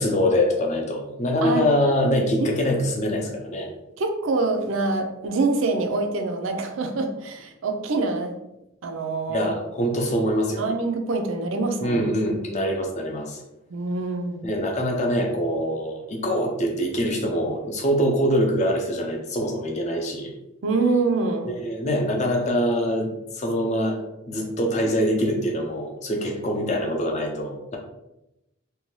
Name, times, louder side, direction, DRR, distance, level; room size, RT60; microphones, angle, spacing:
voice 1, 0.0-3.7 9.3-10.6 11.8-13.4 14.4-20.3 21.5-27.8, equal, 35° left, 1 dB, 0.5 m, -24 dB
voice 2, 4.0-8.3 8.8-9.5 10.6-12.0 13.7-14.5 20.6-21.5 24.3-24.5, right 3 dB, 75° right, 5 dB, 0.4 m, -25 dB
2.6 x 2.2 x 3.0 m, 0.89 s
head